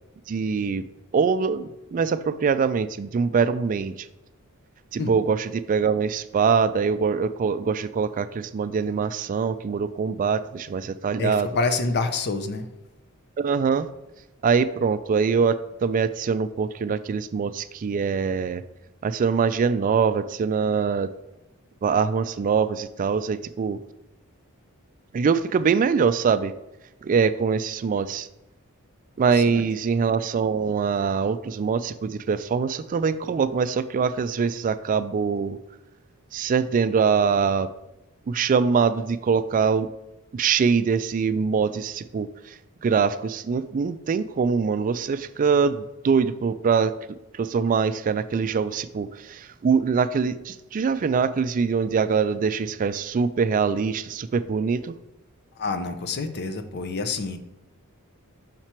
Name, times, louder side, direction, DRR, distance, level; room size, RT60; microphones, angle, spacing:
voice 1, 0.3-0.8 1.1-4.1 4.9-11.5 13.4-13.9 14.4-18.6 19.0-21.1 21.8-23.8 25.1-26.5 27.0-28.3 29.2-35.6 36.3-37.7 38.3-39.9 40.3-46.9 47.3-54.9, right 5 dB, 40° right, 13 dB, 0.3 m, -23 dB
voice 2, 11.2-12.7 29.5-29.7 55.6-57.4, left 3 dB, 50° left, 9 dB, 0.6 m, -27 dB
5.8 x 4.5 x 4.4 m, 0.98 s
head